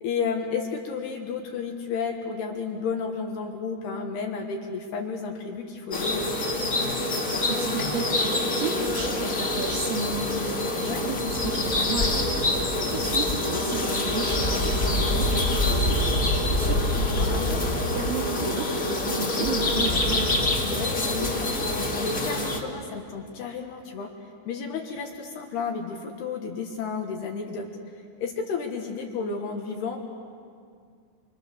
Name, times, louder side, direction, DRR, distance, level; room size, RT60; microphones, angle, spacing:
voice 1, 0.0-6.3 10.8-11.1 17.2-17.6 20.6-21.5 21.9-24.1 24.5-27.7 28.0-30.0, left 5 dB, 65° left, 2 dB, 3.0 m, -32 dB
sound 1, 5.9-22.6, left 1 dB, 45° left, 1.1 m, -25 dB
voice 2, 7.5-20.4, right 4 dB, 60° right, 0 dB, 2.8 m, -34 dB
29.5 x 26.5 x 6.6 m, 2.2 s
omnidirectional pair, 5.9 m